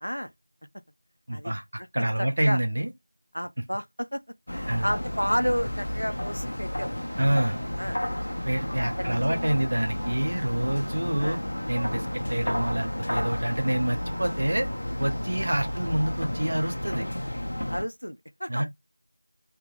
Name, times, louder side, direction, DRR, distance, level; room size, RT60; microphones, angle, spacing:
voice 1, 1.3-1.6 1.9-2.9 4.7-4.9 7.2-7.6 8.5-11.4 11.7-14.7 15.0-17.1 18.5-18.6, right 1 dB, 25° right, 0.5 m, -27 dB
voice 2, 1.8-2.6 3.3-4.2 4.5-7.2 7.8-8.0 8.6-9.4 11.2-11.4 17.7-18.6, equal, 85° left, 0.5 m, -31 dB
sound 1, 4.5-17.8, left 1 dB, 30° left, 0.5 m, -32 dB
3.4 x 2.9 x 2.4 m
figure-of-eight pair, 175°, 0 cm